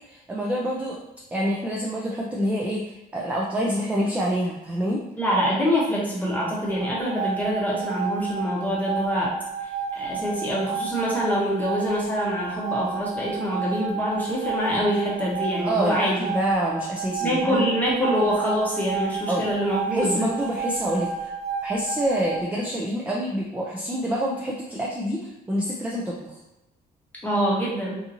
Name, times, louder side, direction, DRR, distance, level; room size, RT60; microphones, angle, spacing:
voice 1, 0.1-1.0 1.3-5.0 15.6-17.6 19.3-19.5 19.9-21.3 21.6-26.4, equal, 10° right, -3 dB, 0.3 m, -27 dB
voice 2, 5.2-9.4 9.9-16.2 17.2-20.3 27.2-28.0, equal, 10° left, -5 dB, 0.8 m, -25 dB
sound 1, 6.6-22.5, right 5 dB, 40° right, 0.9 m, -32 dB
2.7 x 2.5 x 2.7 m, 0.92 s
cardioid pair, 135°, 17 cm